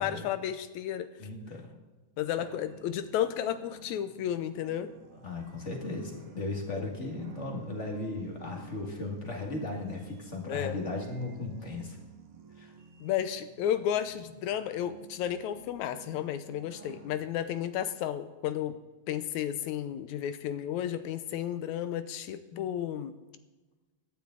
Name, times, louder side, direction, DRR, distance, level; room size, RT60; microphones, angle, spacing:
voice 1, 0.0-1.1 2.2-4.9 6.8-6.9 10.5-10.8 13.0-18.8 19.1-23.1, left 10 dB, 80° left, 12 dB, 2.0 m, -32 dB
voice 2, 1.2-1.7 2.4-2.5 5.2-12.0 12.6-12.7 22.5-22.7, left 2 dB, 30° left, 2 dB, 1.8 m, -36 dB
sound 1, 2.4-17.2, right 6 dB, 60° right, 2.1 m, -53 dB
16.5 x 12.0 x 3.9 m, 1.2 s
omnidirectional pair, 3.5 m